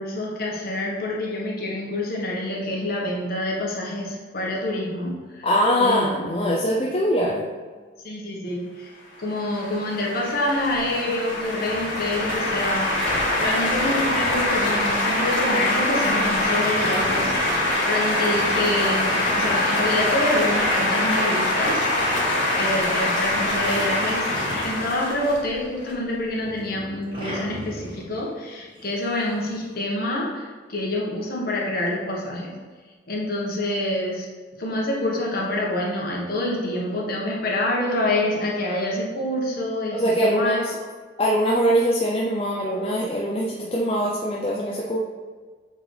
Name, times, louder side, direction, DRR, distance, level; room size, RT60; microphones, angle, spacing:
voice 1, 0.0-5.5 5.8-6.7 8.0-8.9 9.2-13.1 13.4-17.3 17.9-21.9 22.6-32.5 33.1-34.3 34.6-40.6, left 1 dB, 50° left, -3 dB, 1.3 m, -27 dB
voice 2, 5.4-7.4 39.9-40.7 41.2-45.0, equal, 30° left, -3 dB, 0.5 m, -22 dB
sound 1, 9.2-25.9, left 1 dB, 75° left, 1.8 m, -24 dB
sound 2, 11.9-25.5 25.8-29.7, left 1 dB, 25° right, 1.7 m, -40 dB
7.4 x 3.9 x 3.3 m, 1.5 s
head